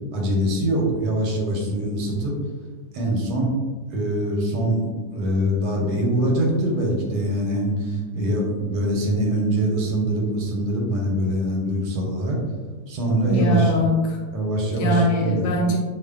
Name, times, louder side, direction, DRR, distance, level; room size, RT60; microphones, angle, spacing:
voice 1, 0.1-2.3 2.9-3.5 3.9-12.4 12.9-13.7 14.3-15.4, right 1 dB, 90° right, -1 dB, 1.2 m, -23 dB
voice 2, 13.2-14.2 14.7-15.8, left 1 dB, 75° left, -1 dB, 1.1 m, -21 dB
2.6 x 2.4 x 2.3 m, 1.3 s
omnidirectional pair, 1.8 m